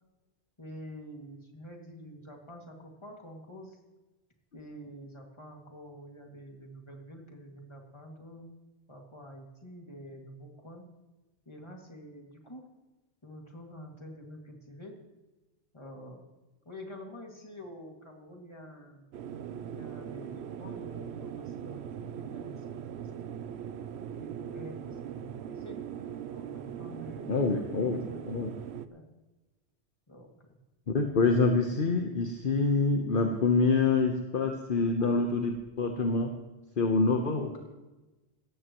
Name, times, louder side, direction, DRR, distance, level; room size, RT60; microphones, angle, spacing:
voice 1, 0.6-3.8 4.5-8.5 8.9-10.9 11.5-12.7 13.2-15.0 15.7-16.3 16.7-19.1 19.7-23.3 24.2-25.8 26.3-29.0 30.1-30.5, equal, 25° left, 1 dB, 2.4 m, -47 dB
sound 1, 19.1-28.9, right 9 dB, 75° right, 0.9 m, -40 dB
voice 2, 27.3-28.5 30.9-36.3 36.8-37.6, left 4 dB, 55° left, 3 dB, 1.2 m, -26 dB
17.0 x 14.5 x 3.1 m, 1.1 s
omnidirectional pair, 1.1 m